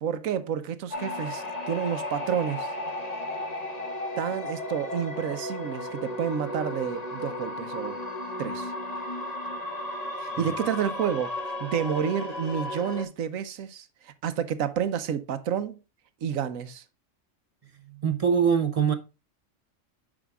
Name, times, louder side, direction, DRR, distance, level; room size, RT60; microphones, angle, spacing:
voice 1, 0.0-2.7 4.2-8.0 8.4-8.7 10.2-15.8 16.2-16.8, right 8 dB, 80° right, 1.2 m, -30 dB
sound 1, 0.9-13.0, left 1 dB, 30° left, 1.1 m, -34 dB
voice 2, 17.9-18.9, right 7 dB, 40° right, 0.5 m, -24 dB
9.8 x 5.0 x 2.3 m
omnidirectional pair, 1.4 m